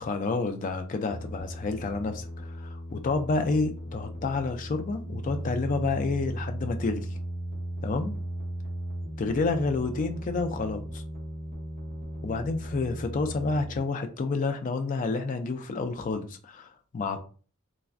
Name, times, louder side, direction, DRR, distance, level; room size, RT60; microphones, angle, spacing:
voice 1, 0.0-7.1 7.8-8.2 9.2-11.0 12.2-17.2, left 3 dB, 35° left, 6 dB, 0.3 m, -29 dB
sound 1, 1.1-13.8, equal, 30° right, 0.8 m, -37 dB
3.2 x 2.0 x 2.4 m, 0.39 s
head